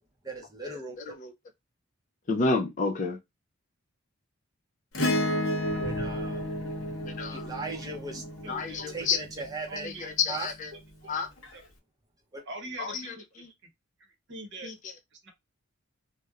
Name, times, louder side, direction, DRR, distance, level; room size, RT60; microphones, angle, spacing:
voice 1, 0.2-1.2 5.8-6.5 7.3-8.2 8.9-9.9 10.3-10.5 12.3-12.4, right 3 dB, 15° right, 0.6 m, -38 dB
voice 2, 1.0-1.3 2.3-3.2 7.2-7.5 8.5-9.2 9.8-10.7 11.0-11.3 12.8-13.5 14.6-14.9, left 4 dB, 35° left, 0.4 m, -30 dB
Acoustic guitar / Strum, 4.9-9.5 11.4-11.5, left 1 dB, 65° left, 0.8 m, -31 dB
sound 1, 5.5-9.3 10.5-10.6, left 1 dB, ahead, 0.9 m, -45 dB
voice 3, 7.7-8.8 9.7-10.1 11.0-11.1 11.5-11.6 12.5-13.7 14.0-14.7 15.1-15.3, right 2 dB, 55° right, 0.8 m, -44 dB
2.8 x 2.1 x 2.3 m
head